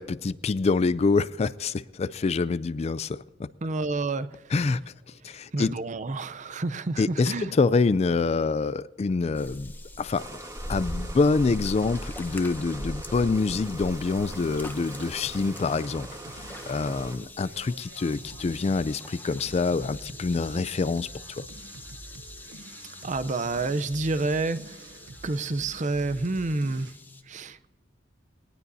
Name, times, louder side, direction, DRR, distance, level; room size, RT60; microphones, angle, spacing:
voice 1, 0.0-3.5 4.5-4.8 5.2-5.8 7.0-9.7 10.0-10.4 10.7-16.1 16.4-21.4, left 4 dB, 35° left, 0.3 m, -26 dB
voice 2, 3.6-4.3 5.5-7.5 23.0-24.8 25.2-26.9 27.3-27.6, right 3 dB, 40° right, 0.6 m, -29 dB
sound 1, 9.3-27.2, left 1 dB, 10° left, 1.0 m, -42 dB
sound 2, 10.2-17.2, right 2 dB, 20° right, 1.4 m, -42 dB
sound 3, 14.2-26.9, right 2 dB, 70° right, 0.9 m, -47 dB
20.0 x 19.0 x 2.7 m
head